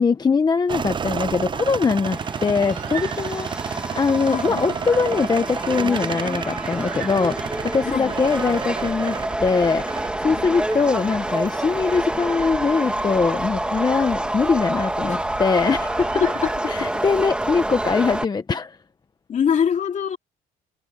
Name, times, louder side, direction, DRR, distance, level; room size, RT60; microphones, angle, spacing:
voice 1, 0.0-9.9 10.2-16.1 16.7-18.8, left 5 dB, 25° left, 0.9 m, -22 dB
sound 1, 0.7-18.2, right 6 dB, 30° right, 0.6 m, -32 dB
Subway metro underground, 2.1-18.2, right 1 dB, 5° right, 2.5 m, -28 dB
Bird, 2.6-3.7 5.8-7.9 11.3-13.2 15.1-17.1, right 10 dB, 50° right, 4.1 m, -41 dB
voice 2, 4.3-4.8 7.8-8.2 10.3-10.5 14.2-14.3 15.0-15.2 16.2-16.3 16.6-16.9 19.3-20.2, left 7 dB, 45° left, 2.4 m, -24 dB
cardioid pair, 110°, 17 cm